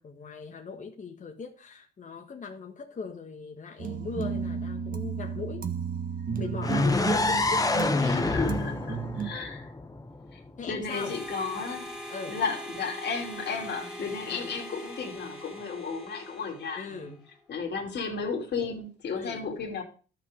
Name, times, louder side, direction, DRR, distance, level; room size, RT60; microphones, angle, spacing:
voice 1, 0.0-5.7 6.4-7.7 10.6-11.2 12.1-12.4 14.3-14.5 16.7-17.2 19.1-19.4, left 5 dB, 40° left, 1.6 m, -39 dB
sound 1, 3.8-9.3, right 7 dB, 45° right, 1.3 m, -33 dB
sound 2, 6.6-10.5, left 3 dB, 15° left, 1.1 m, -27 dB
voice 2, 8.0-9.7 10.3-10.4 10.7-17.1 17.5-19.8, left 5 dB, 55° left, 2.9 m, -34 dB
Harmonica, 10.9-17.2, equal, 5° right, 2.8 m, -42 dB
12.5 x 5.9 x 6.7 m
cardioid pair, 90°, 20 cm